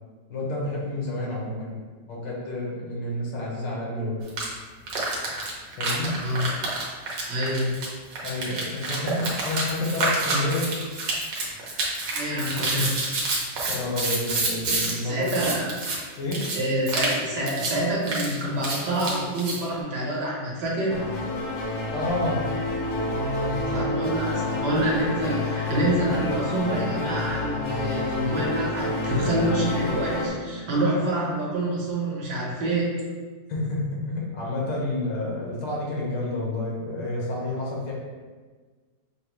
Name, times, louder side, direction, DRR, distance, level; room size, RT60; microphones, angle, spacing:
voice 1, 0.3-1.7 2.1-4.2 5.8-6.1 8.2-10.7 13.7-15.3 16.2-16.5 21.9-22.4 23.0-24.0 33.5-37.9, left 2 dB, 90° left, -4 dB, 1.8 m, -29 dB
sound 1, 4.3-4.5 4.9-14.9 15.2-16.0 16.3-16.6 16.9-17.2 17.5-17.7 18.0-19.6, right 2 dB, 90° right, 1.6 m, -28 dB
voice 2, 7.3-7.8 12.1-13.0 15.0-15.7 16.5-21.0 23.7-32.9, right 1 dB, 70° right, -5 dB, 1.6 m, -27 dB
sound 2, 20.9-30.3, left 2 dB, 65° left, 0.7 m, -29 dB
6.3 x 2.1 x 3.0 m, 1.4 s
omnidirectional pair, 1.9 m